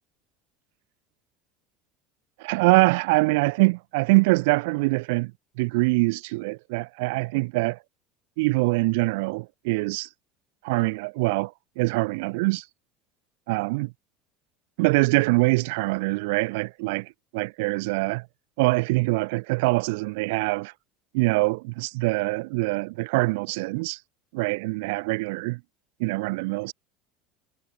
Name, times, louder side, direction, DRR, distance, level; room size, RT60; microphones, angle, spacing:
voice 1, 2.4-5.3 5.6-7.8 8.4-10.1 10.6-12.6 13.5-13.9 14.8-18.3 18.6-20.7 21.1-24.0 24.3-25.6 26.0-26.7, right 26 dB, 80° right, 2.3 m, -24 dB
cardioid pair, 150°, 0 cm